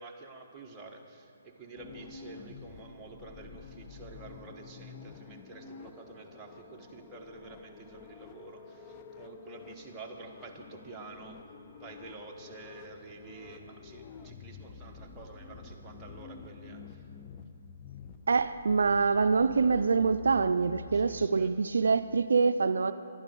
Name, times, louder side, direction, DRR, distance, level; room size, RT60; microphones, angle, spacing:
voice 1, 0.0-11.4 11.8-17.1 20.9-21.5, right 3 dB, 15° right, -1 dB, 1.1 m, -49 dB
sound 1, 1.8-21.3, left 5 dB, 25° left, 0.6 m, -49 dB
voice 2, 18.3-22.9, right 4 dB, 80° right, 11 dB, 0.3 m, -25 dB
11.5 x 11.0 x 5.4 m, 2.5 s
hypercardioid pair, 150°, 0 cm